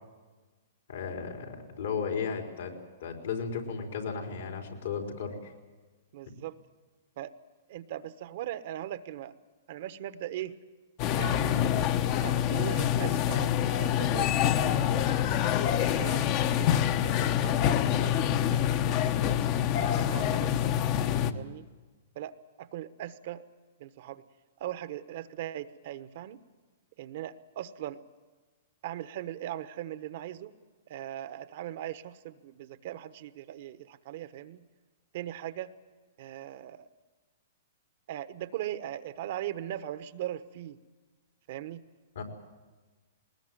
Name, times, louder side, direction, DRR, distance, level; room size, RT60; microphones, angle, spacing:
voice 1, 0.9-2.7 3.0-5.5 21.1-21.3 42.2-42.3, left 5 dB, 75° left, 2 dB, 4.2 m, -35 dB
voice 2, 6.1-6.6 7.2-7.3 7.7-9.3 9.7-10.6 11.1-11.9 12.2-15.1 15.4-15.5 16.0-19.7 19.9-20.5 21.3-21.7 22.1-23.4 23.8-24.2 24.6-26.4 27.0-28.0 28.8-30.5 30.9-34.6 35.1-35.7 36.2-36.9 38.1-40.8 41.5-41.8, right 12 dB, 55° right, 13 dB, 1.1 m, -39 dB
sound 1, 11.0-21.3, left 10 dB, 40° left, 1.0 m, -26 dB
20.0 x 20.0 x 9.2 m, 1.3 s
hypercardioid pair, 130°, 0 cm